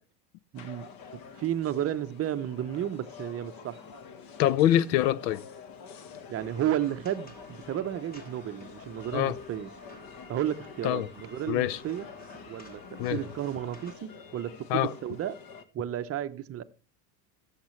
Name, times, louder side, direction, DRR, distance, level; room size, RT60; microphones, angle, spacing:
sound 1, 0.5-15.6, left 6 dB, 45° left, 1.3 m, -48 dB
voice 1, 0.5-0.9 1.1-3.8 6.3-9.7 10.3-12.1 12.5-15.4 15.7-16.6, right 11 dB, 30° right, 0.7 m, -32 dB
voice 2, 4.4-5.4 9.1-9.3 10.8-11.1 11.5-11.8 13.0-13.2 14.7-14.9, left 12 dB, 85° left, 0.8 m, -24 dB
sound 2, 6.3-13.9, left 1 dB, 20° left, 2.2 m, -52 dB
16.0 x 7.4 x 3.2 m
supercardioid pair, 115°, 49 cm